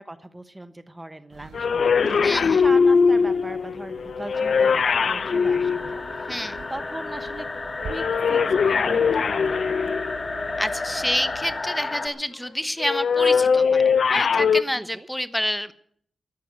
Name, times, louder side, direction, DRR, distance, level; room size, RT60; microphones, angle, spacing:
voice 1, 0.0-6.4 6.7-7.5 7.9-10.0 14.7-15.1, right 1 dB, 15° right, 11 dB, 1.0 m, -39 dB
sound 1, 1.3-11.6, right 7 dB, 90° right, 0.9 m, -45 dB
sound 2, 1.5-6.6 7.8-10.4 12.8-14.6, left 5 dB, 75° left, 0.6 m, -21 dB
voice 2, 2.2-2.6 6.3-6.6 10.6-15.7, equal, 5° left, 12 dB, 1.1 m, -28 dB
sound 3, 4.3-12.1, left 3 dB, 45° left, 1.9 m, -32 dB
13.5 x 11.5 x 8.1 m, 0.62 s
cardioid pair, 60°, 0 cm